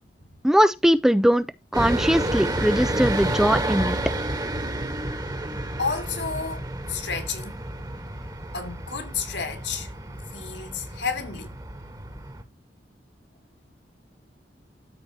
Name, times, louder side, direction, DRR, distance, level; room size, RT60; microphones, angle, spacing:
voice 1, 0.4-1.5 1.7-4.0, equal, 5° right, 0.3 m, -20 dB
sound 1, 1.7-12.4, right 1 dB, 20° right, 1.4 m, -30 dB
voice 2, 5.8-7.6 8.5-9.9 10.3-11.5, left 5 dB, 75° left, 2.3 m, -31 dB
13.5 x 4.6 x 2.7 m
head